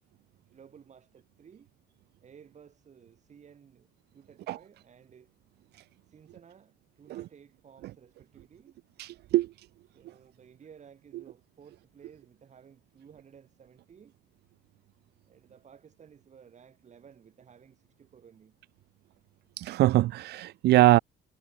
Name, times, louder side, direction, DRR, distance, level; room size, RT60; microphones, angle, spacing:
voice 1, 0.5-1.7 2.2-5.3 6.1-8.8 9.9-14.2 15.2-18.6, right 7 dB, 45° right, 7.0 m, -55 dB
voice 2, 9.0-9.5 19.6-21.0, right 16 dB, 70° right, 0.5 m, -22 dB
cardioid pair, 115°, 17 cm